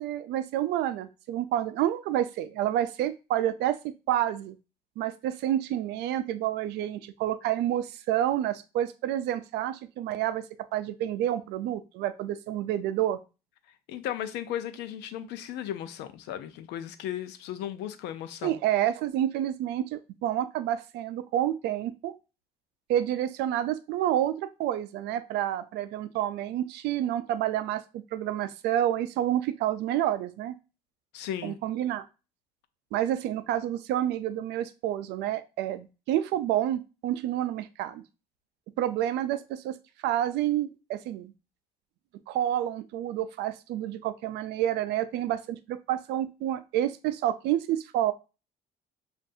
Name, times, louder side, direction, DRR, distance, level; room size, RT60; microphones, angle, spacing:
voice 1, 0.0-3.8 4.1-4.5 5.0-10.4 10.7-13.2 18.4-22.1 22.9-27.8 28.1-30.6 31.4-32.0 32.9-38.0 38.8-39.8 40.0-41.3 42.3-48.1, right 12 dB, 80° right, 0.5 m, -29 dB
voice 2, 13.9-18.6 31.1-31.6, left 11 dB, 90° left, 0.6 m, -36 dB
7.5 x 2.6 x 2.7 m
cardioid pair, 110°, 17 cm